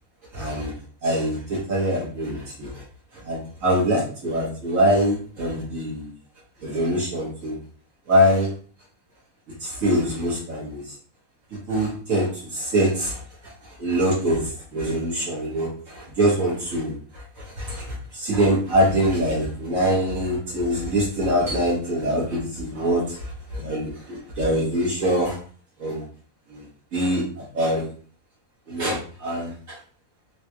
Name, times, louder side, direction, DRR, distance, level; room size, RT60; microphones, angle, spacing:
voice 1, 0.3-0.7 1.0-2.8 3.2-6.1 6.6-7.5 8.1-8.5 9.6-10.9 11.7-25.4 25.8-26.0 26.5-26.6 26.9-27.8 28.7-29.8, equal, 60° right, -5 dB, 1.6 m, -24 dB
3.7 x 2.9 x 2.3 m, 0.43 s
omnidirectional pair, 1.6 m